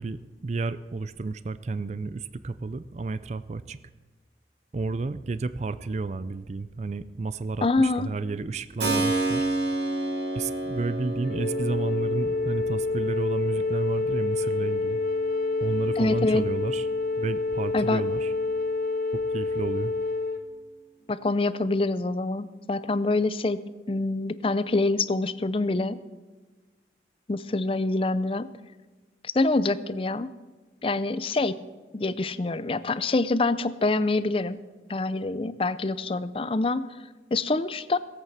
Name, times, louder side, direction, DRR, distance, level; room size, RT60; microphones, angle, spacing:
voice 1, 0.0-3.8 4.7-9.5 10.3-15.0 15.6-16.9 17.2-18.3 19.1-19.9, right 3 dB, 40° right, 14 dB, 0.4 m, -31 dB
voice 2, 7.6-8.1 16.0-16.4 17.7-18.0 21.1-23.6 23.9-26.0 27.3-28.5 29.2-30.3 30.8-31.6 31.9-34.6 34.9-36.9 37.3-38.0, left 2 dB, 30° left, 15 dB, 0.5 m, -25 dB
Keyboard (musical), 8.8-17.4, right 2 dB, 75° right, 2.9 m, -32 dB
Wind instrument woodwind instrument, 11.3-20.4, left 3 dB, 55° left, 1.1 m, -28 dB
17.5 x 8.2 x 7.3 m, 1.3 s
head